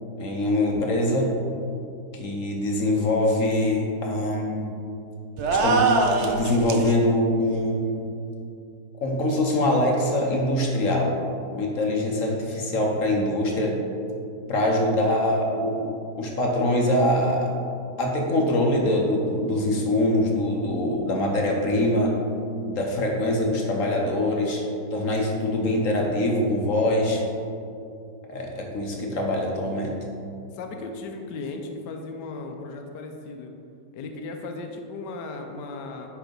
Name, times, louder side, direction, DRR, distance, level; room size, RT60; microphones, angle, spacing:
voice 1, 0.2-1.3 2.2-4.7 5.5-5.8 6.2-8.0 9.0-11.1 11.5-13.8 14.5-17.5 18.0-22.1 22.6-24.6 24.9-27.2 28.3-29.9, left 1 dB, 55° left, 0 dB, 1.1 m, -23 dB
sound 1, 5.4-6.9, right 3 dB, 80° right, 0.6 m, -22 dB
voice 2, 30.5-33.5 33.9-36.1, left 3 dB, 75° left, 4 dB, 1.3 m, -36 dB
9.6 x 3.4 x 5.2 m, 2.5 s
omnidirectional pair, 1.9 m